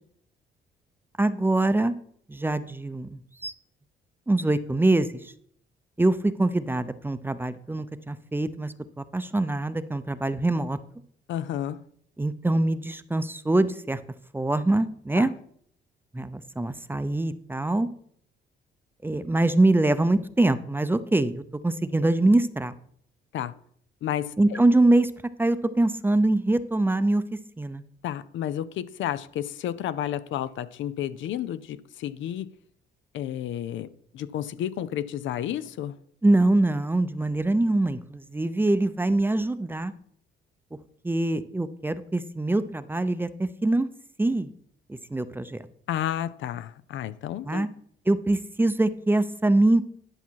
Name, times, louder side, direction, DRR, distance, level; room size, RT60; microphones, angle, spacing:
voice 1, 1.2-1.9 2.3-3.5 4.3-5.1 6.0-10.8 12.2-14.0 14.3-15.3 16.1-17.9 19.0-22.7 24.4-25.1 25.4-27.2 27.6-27.8 36.2-39.9 41.0-43.9 44.2-44.5 44.9-45.6 47.5-47.7 48.1-49.8, right 2 dB, 10° right, 0.6 m, -24 dB
voice 2, 11.3-11.8 15.1-15.3 23.3-23.5 24.0-24.6 28.0-32.5 33.1-33.9 34.1-35.9 45.9-47.7, left 11 dB, 75° left, 0.5 m, -31 dB
11.0 x 5.7 x 4.6 m
cardioid pair, 90°, 20 cm